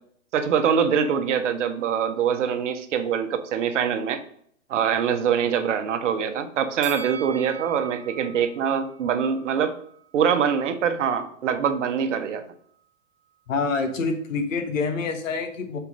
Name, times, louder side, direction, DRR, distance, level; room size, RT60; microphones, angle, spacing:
voice 1, 0.3-4.2 4.7-9.7 10.1-12.4, right 7 dB, 65° right, 8 dB, 1.1 m, -24 dB
Bell, 6.8-10.0 10.4-10.5, right 7 dB, 10° right, 0.3 m, -41 dB
voice 2, 13.5-15.8, left 4 dB, 80° left, 5 dB, 1.5 m, -26 dB
5.7 x 4.5 x 5.2 m, 0.64 s
hypercardioid pair, 140°, 39 cm